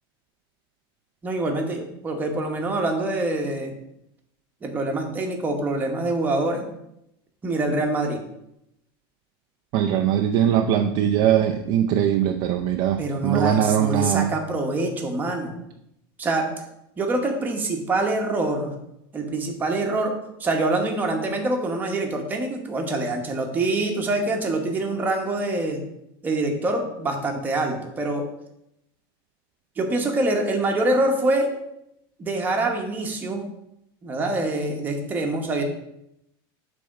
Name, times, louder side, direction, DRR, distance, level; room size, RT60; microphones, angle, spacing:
voice 1, 1.2-3.7 4.6-6.7 7.4-8.2 13.0-15.5 16.2-16.5 17.0-18.7 19.1-20.1 20.4-25.8 26.2-28.2 29.8-31.5 32.2-33.5 34.0-35.6, right 2 dB, 15° right, 2 dB, 1.0 m, -25 dB
voice 2, 9.7-14.3, right 10 dB, 40° right, 5 dB, 0.4 m, -21 dB
8.4 x 3.5 x 6.3 m, 0.81 s
supercardioid pair, 170°, 13 cm